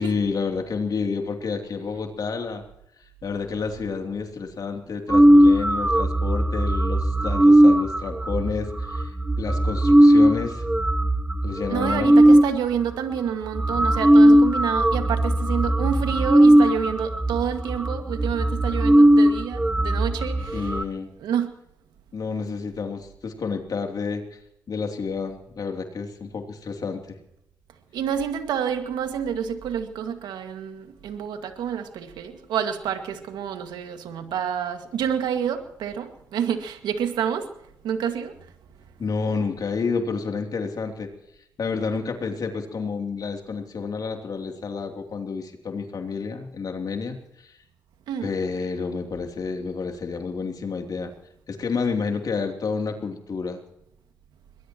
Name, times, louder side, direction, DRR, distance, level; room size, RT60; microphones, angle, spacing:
voice 1, 0.0-2.6 3.2-10.6 11.4-12.1 20.5-21.1 22.1-24.4 24.7-27.2 39.0-41.1 41.6-47.6 48.2-51.1 51.5-53.6, left 5 dB, 60° left, 4 dB, 3.0 m, -29 dB
sound 1, 5.1-12.5 13.2-13.3 13.5-20.8, right 1 dB, 15° right, 1.2 m, -18 dB
voice 2, 11.7-20.7 21.2-21.5 27.9-37.5 37.8-38.3 48.1-48.3, right 8 dB, 85° right, 7 dB, 2.0 m, -28 dB
22.5 x 20.5 x 3.0 m, 0.78 s
supercardioid pair, 50°, 7 cm